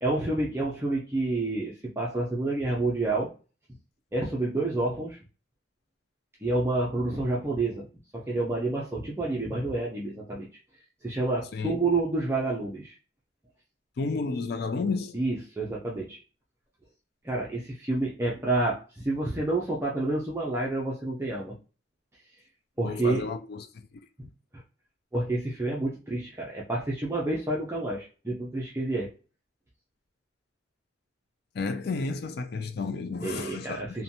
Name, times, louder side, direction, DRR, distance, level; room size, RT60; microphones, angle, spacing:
voice 1, 0.0-3.3 4.1-5.2 6.4-7.9 8.1-10.5 11.0-12.9 15.1-16.2 17.2-21.5 22.8-23.2 25.1-29.1 33.2-34.0, right 2 dB, 15° right, 0.4 m, -29 dB
voice 2, 14.0-15.2 22.8-23.7 31.5-34.0, left 4 dB, 50° left, 0.3 m, -32 dB
2.5 x 2.2 x 2.7 m
head